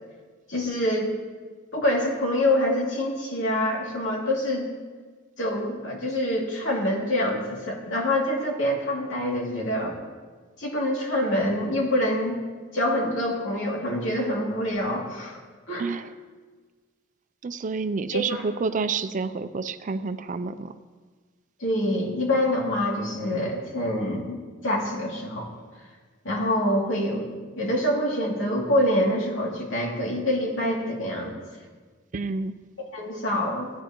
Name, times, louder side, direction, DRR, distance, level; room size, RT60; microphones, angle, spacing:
voice 1, 0.5-1.1 1.7-4.7 5.4-9.9 10.6-12.4 12.7-15.4 15.7-15.9 18.1-18.2 21.6-24.4 24.6-25.5 26.2-27.3 27.6-31.3 32.9-33.7, left 1 dB, 70° left, -2 dB, 2.6 m, -25 dB
voice 2, 15.8-16.1 17.4-20.8 32.1-32.5, right 4 dB, 40° right, 12 dB, 0.4 m, -29 dB
17.0 x 10.0 x 3.0 m, 1.5 s
head